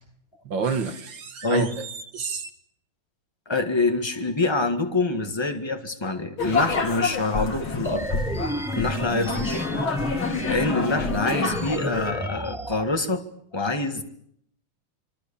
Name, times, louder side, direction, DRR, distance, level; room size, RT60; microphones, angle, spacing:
voice 1, 0.5-2.5, right 5 dB, 60° right, 2.2 m, -29 dB
voice 2, 3.5-8.1 8.7-9.7 10.2-13.2 13.5-14.0, left 3 dB, 15° left, 1.6 m, -26 dB
sound 1, 6.4-12.1, left 4 dB, 65° left, 3.8 m, -28 dB
sound 2, 7.8-12.8, equal, 5° right, 0.3 m, -30 dB
25.0 x 24.5 x 7.0 m
omnidirectional pair, 2.4 m